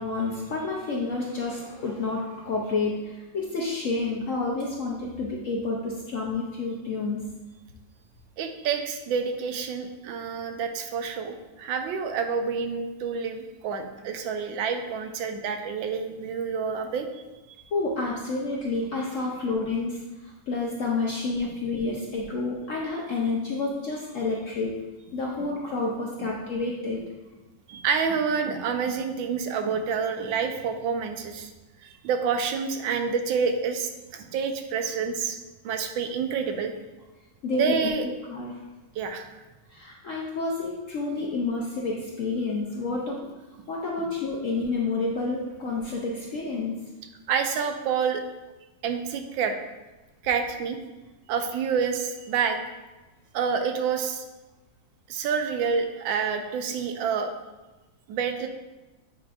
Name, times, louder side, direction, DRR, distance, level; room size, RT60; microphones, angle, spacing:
voice 1, 0.0-7.3 17.7-27.0 37.4-37.7 38.0-38.6 39.7-43.3 43.7-46.8, left 3 dB, 70° left, -2 dB, 0.7 m, -29 dB
voice 2, 8.4-17.1 25.4-25.5 27.7-31.5 31.8-35.4 35.6-36.7 37.6-38.0 39.0-39.3 47.3-48.2 48.8-49.5 50.2-50.8 51.3-52.6 53.3-54.2 55.1-57.3 58.1-58.5, right 6 dB, 90° right, 6 dB, 1.4 m, -28 dB
8.4 x 4.8 x 2.4 m, 1.1 s
omnidirectional pair, 2.0 m